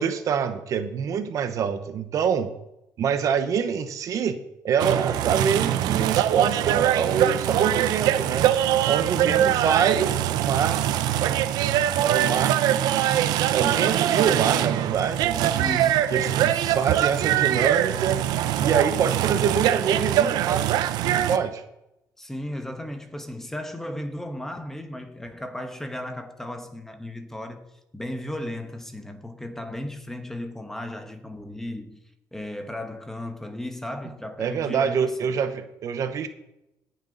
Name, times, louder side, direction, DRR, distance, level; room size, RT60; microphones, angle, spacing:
voice 1, 0.0-2.5 3.0-4.4 4.6-8.5 8.8-10.8 12.0-12.8 13.5-15.5 16.1-18.2 18.6-21.6 34.4-36.3, right 7 dB, 55° right, 0.9 m, -25 dB
sound 1, 4.8-21.4, right 11 dB, 90° right, 0.6 m, -23 dB
voice 2, 9.2-9.6 14.0-14.3 15.5-16.1 16.5-16.8 22.2-27.7 27.9-32.0 32.3-35.2, left 1 dB, 5° left, 1.1 m, -35 dB
18.0 x 6.5 x 4.0 m
cardioid pair, 130°, 7 cm